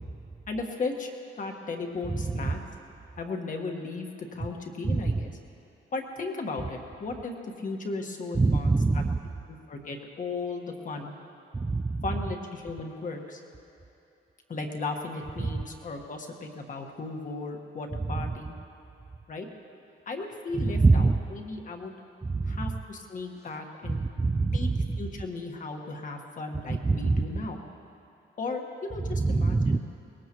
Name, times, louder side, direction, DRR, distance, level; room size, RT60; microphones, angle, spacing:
voice 1, 0.5-1.1 1.3-2.6 3.2-5.4 5.9-9.0 9.5-11.1 12.0-13.4 14.5-18.6 19.3-19.5 20.1-22.0 22.4-24.0 24.5-24.7 25.0-27.6 28.4-29.8, left 3 dB, 40° left, 3 dB, 1.5 m, -36 dB
voice 2, 4.9-5.2 8.4-9.2 11.5-12.0 15.4-15.6 20.6-21.2 22.3-22.7 23.9-24.8 26.7-27.2 29.2-29.8, right 3 dB, 15° right, 6 dB, 0.3 m, -24 dB
23.0 x 20.0 x 3.1 m, 2.8 s
cardioid pair, 145°, 21 cm